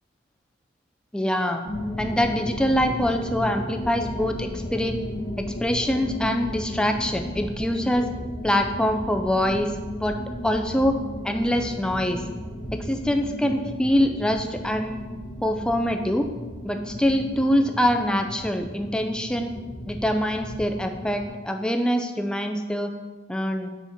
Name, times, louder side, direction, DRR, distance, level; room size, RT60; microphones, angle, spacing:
voice 1, 1.1-1.6 2.0-5.0 5.4-8.1 8.4-9.7 10.0-10.2 10.4-11.0 11.2-12.2 12.7-15.1 15.4-16.3 16.6-19.6 19.9-22.9 23.3-23.7, equal, 5° left, 5 dB, 0.3 m, -24 dB
sound 1, 1.6-21.3, equal, 25° left, 1.0 m, -34 dB
4.9 x 4.3 x 5.1 m, 1.3 s
head